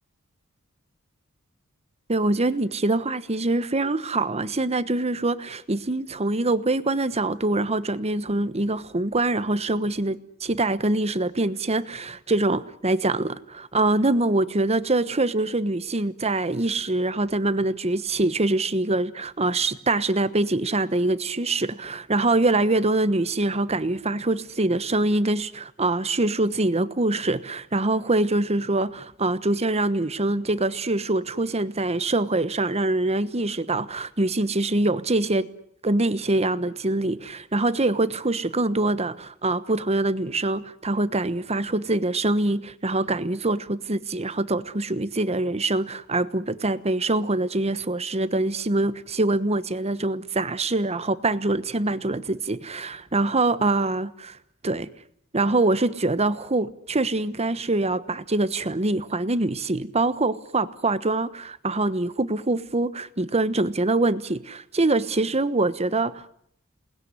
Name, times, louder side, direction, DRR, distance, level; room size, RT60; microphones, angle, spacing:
voice 1, 2.1-35.5 35.8-54.4 54.6-54.9 55.3-66.3, right 2 dB, 30° right, 1.2 m, -24 dB
28.0 x 20.0 x 9.7 m
head